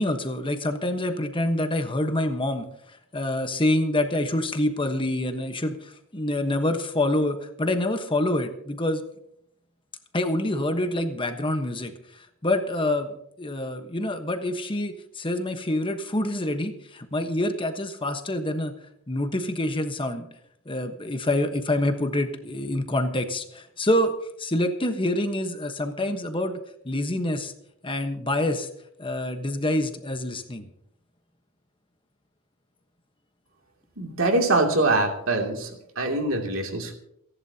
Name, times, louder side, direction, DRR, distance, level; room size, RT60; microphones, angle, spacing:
voice 1, 0.0-2.6 3.1-9.0 10.1-11.9 12.4-13.1 13.4-18.7 19.1-20.2 20.7-24.1 24.4-26.6 26.8-27.5 27.8-28.7 29.0-30.7, left 1 dB, 25° left, 6 dB, 1.2 m, -26 dB
voice 2, 34.0-35.7 36.0-36.9, right 2 dB, 65° right, 2 dB, 2.8 m, -23 dB
29.0 x 11.0 x 2.9 m, 0.74 s
head